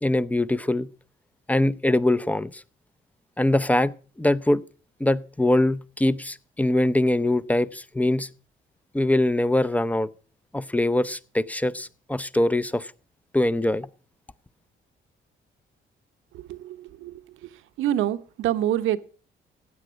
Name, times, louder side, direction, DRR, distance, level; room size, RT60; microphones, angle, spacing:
voice 1, 0.0-0.9 1.5-2.6 3.4-4.6 5.0-8.3 8.9-10.1 10.5-12.9 13.3-13.9, left 1 dB, 5° left, 15 dB, 0.6 m, -23 dB
voice 2, 16.3-17.2 17.8-19.0, right 12 dB, 85° right, 11 dB, 1.0 m, -26 dB
15.5 x 9.1 x 6.2 m, 0.39 s
cardioid pair, 90°, 20 cm